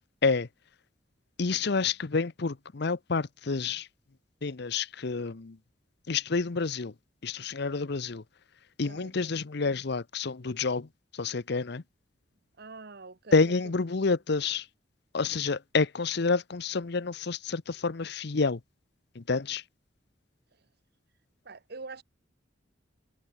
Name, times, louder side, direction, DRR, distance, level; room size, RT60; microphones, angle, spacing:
voice 1, 1.4-3.9 4.4-5.6 6.1-6.9 7.2-8.2 8.8-11.8 13.3-14.7 15.1-18.6 19.1-19.6, left 4 dB, 60° left, 0.8 m, -29 dB
voice 2, 8.9-9.3 12.6-13.4 14.0-14.2 21.4-22.0, right 3 dB, 60° right, 1.3 m, -44 dB
head